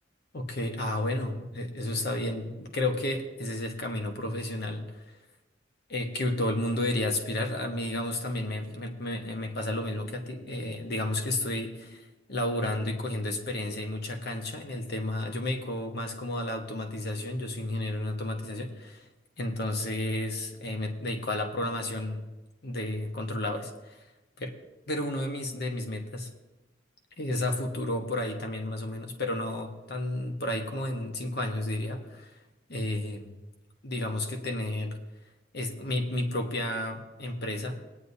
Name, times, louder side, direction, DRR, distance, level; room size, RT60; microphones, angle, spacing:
voice 1, 0.3-5.2 5.9-12.0 12.3-19.0 19.4-22.2 22.6-24.0 24.4-24.5 24.9-26.3 27.2-32.3 32.7-33.3 33.8-35.0 35.5-37.8, left 1 dB, 55° left, 4 dB, 1.2 m, -32 dB
19.0 x 9.7 x 2.7 m, 1.1 s
head